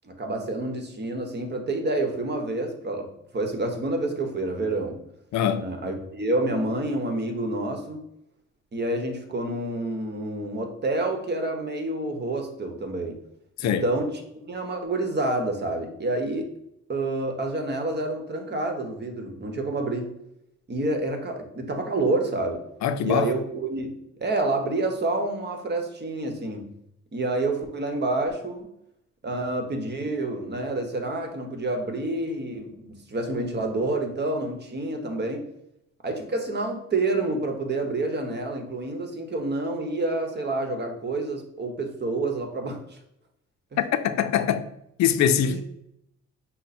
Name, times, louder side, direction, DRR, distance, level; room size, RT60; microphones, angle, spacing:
voice 1, 0.0-3.1 3.3-5.0 5.6-8.0 8.7-13.2 13.6-14.2 14.5-16.5 16.9-20.2 20.7-22.6 23.0-26.7 27.1-28.7 29.2-35.4 36.0-43.0 43.7-43.8 45.4-45.6, right 2 dB, 35° right, 1.0 m, -28 dB
voice 2, 5.3-5.7 13.6-13.8 22.8-23.3 43.8-44.7 45.0-45.6, left 9 dB, 65° left, 0.5 m, -23 dB
5.5 x 2.1 x 4.1 m
cardioid pair, 90°, 30 cm